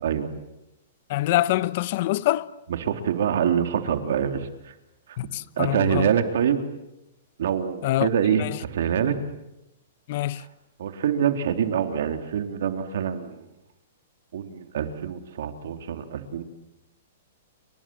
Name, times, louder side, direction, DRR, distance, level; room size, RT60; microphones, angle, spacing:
voice 1, 1.1-2.5 5.2-6.1 7.8-8.1 8.4-8.6 10.1-10.4, left 15 dB, 45° left, 0.9 m, -25 dB
voice 2, 2.7-4.5 5.6-6.6 7.4-9.2 10.4-10.5 10.8-13.4 14.3-16.4, right 8 dB, 70° right, 3.3 m, -25 dB
29.0 x 24.5 x 7.7 m
hypercardioid pair, 160°, 0 cm